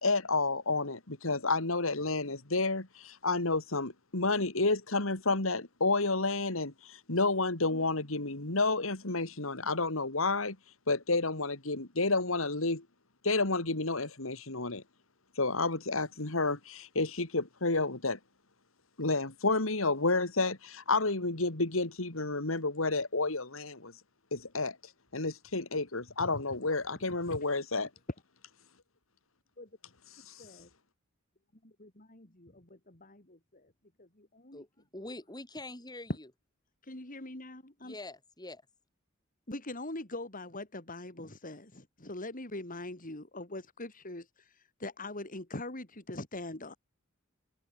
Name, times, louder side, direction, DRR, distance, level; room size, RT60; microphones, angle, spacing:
voice 1, 0.0-10.6 10.9-12.8 13.2-14.8 15.4-18.2 19.0-23.9 24.3-24.8 25.1-27.9 30.1-30.4, left 3 dB, 75° left, 2.9 m, -30 dB
voice 2, 30.4-30.7 31.6-33.7 34.0-34.6 35.0-35.1 36.9-38.0 39.5-44.3 44.8-46.8, left 2 dB, 40° left, 4.4 m, -43 dB
voice 3, 34.9-36.3 37.8-38.6, left 2 dB, 20° left, 7.3 m, -44 dB
head